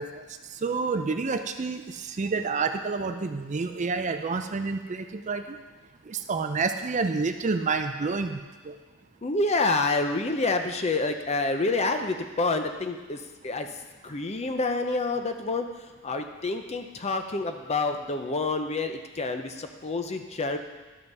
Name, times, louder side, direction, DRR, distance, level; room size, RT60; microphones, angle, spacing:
voice 1, 0.0-5.6 6.0-8.8, right 4 dB, 35° right, 8 dB, 0.4 m, -29 dB
voice 2, 9.2-13.2 13.4-13.7 14.0-15.7 16.0-20.6, left 3 dB, 30° left, 6 dB, 0.6 m, -28 dB
12.0 x 5.7 x 5.4 m, 1.3 s
head